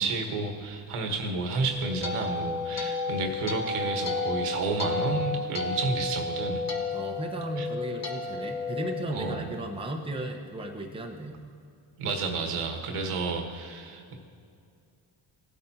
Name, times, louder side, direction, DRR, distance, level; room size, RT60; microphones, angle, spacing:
voice 1, 0.0-6.6 7.6-7.7 9.1-9.6 12.0-14.2, right 3 dB, 80° right, 3 dB, 1.5 m, -31 dB
sound 1, 1.5-9.9, left 3 dB, 30° left, 1.2 m, -32 dB
voice 2, 6.9-11.3, right 1 dB, 10° right, 1 dB, 1.1 m, -35 dB
16.5 x 8.5 x 2.9 m, 2.4 s
cardioid pair, 85°, 50 cm